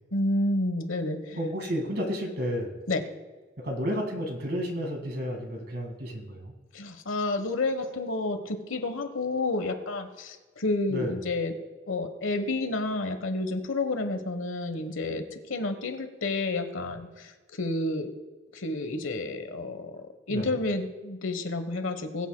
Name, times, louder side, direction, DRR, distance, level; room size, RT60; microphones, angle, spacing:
voice 1, 0.1-1.4 2.9-3.0 6.7-11.5 11.9-15.2 15.5-17.3 17.6-18.1 18.5-19.9 20.3-22.3, left 2 dB, 90° left, 8 dB, 1.2 m, -30 dB
voice 2, 1.4-2.8 3.6-6.5 10.9-11.2 20.3-20.5, equal, 50° right, 3 dB, 2.0 m, -31 dB
21.0 x 8.4 x 2.3 m, 1.3 s
head